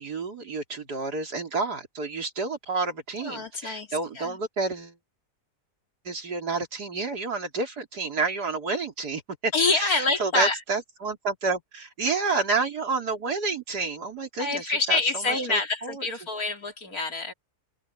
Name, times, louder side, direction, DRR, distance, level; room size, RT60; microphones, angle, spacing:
voice 1, 0.0-5.0 6.0-16.0, right 4 dB, 85° right, 3.9 m, -30 dB
voice 2, 3.2-4.4 9.5-10.6 14.4-17.3, left 3 dB, 65° left, 3.3 m, -26 dB
omnidirectional pair, 1.7 m